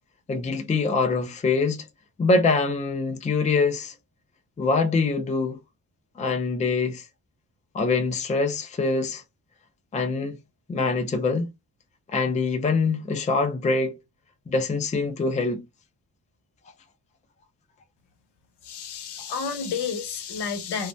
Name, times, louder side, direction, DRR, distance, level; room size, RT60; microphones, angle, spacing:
voice 1, 0.3-1.9 2.2-3.9 4.6-5.6 6.2-7.0 7.7-9.2 9.9-10.4 10.7-11.5 12.1-14.0 14.5-15.6, left 3 dB, 20° left, 0.4 m, -24 dB
voice 2, 18.6-20.9, left 6 dB, 80° left, 0.8 m, -31 dB
2.6 x 2.0 x 3.1 m
wide cardioid pair, 165°, 40 cm